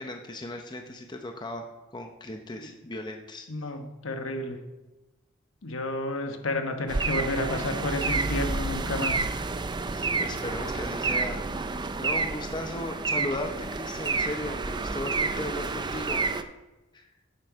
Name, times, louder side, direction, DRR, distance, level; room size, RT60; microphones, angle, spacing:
voice 1, 0.0-1.6 1.9-3.5 9.9-16.2 16.9-17.1, left 1 dB, 20° left, 4 dB, 0.7 m, -36 dB
voice 2, 3.5-4.6 5.6-9.2, left 2 dB, 65° left, 5 dB, 1.1 m, -31 dB
sound 1, 6.9-16.4, right 3 dB, 20° right, 0.4 m, -29 dB
10.5 x 7.7 x 4.6 m, 1.1 s
head